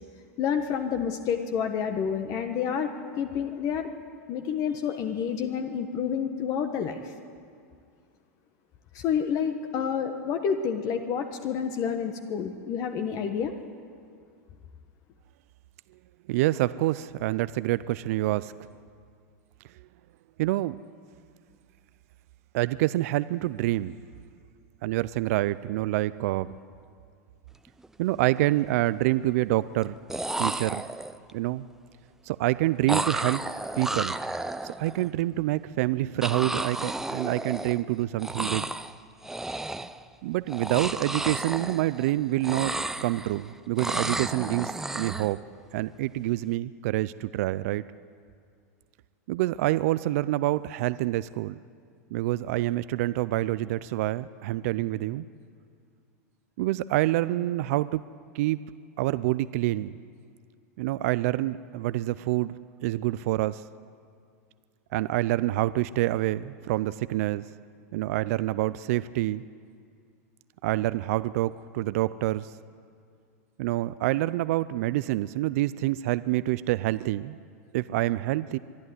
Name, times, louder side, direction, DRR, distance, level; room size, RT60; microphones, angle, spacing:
voice 1, 0.4-2.9 3.2-3.9 4.3-7.1 8.9-13.5, left 7 dB, 40° left, 6 dB, 1.3 m, -29 dB
voice 2, 16.3-18.5 20.4-20.8 22.5-24.0 24.8-26.5 28.0-30.0 30.4-30.8 31.3-31.6 32.2-33.4 33.8-34.2 34.6-38.7 40.2-45.4 45.7-47.8 49.3-51.5 52.1-55.3 56.6-58.0 58.3-58.6 59.0-60.0 60.8-62.5 62.8-63.6 64.9-67.5 67.9-69.4 70.6-72.5 73.6-77.4 77.7-78.6, right 16 dB, 65° right, 16 dB, 0.5 m, -27 dB
sound 1, 27.7-27.9 28.2-28.8 29.8-29.9 30.1-31.3 32.9-35.1 36.2-37.9 38.2-38.9 39.2-40.0 40.5-42.1 42.4-43.4 43.8-45.3, right 2 dB, 5° right, 0.6 m, -32 dB
23.5 x 12.0 x 9.8 m, 2.3 s
hypercardioid pair, 120°, 9 cm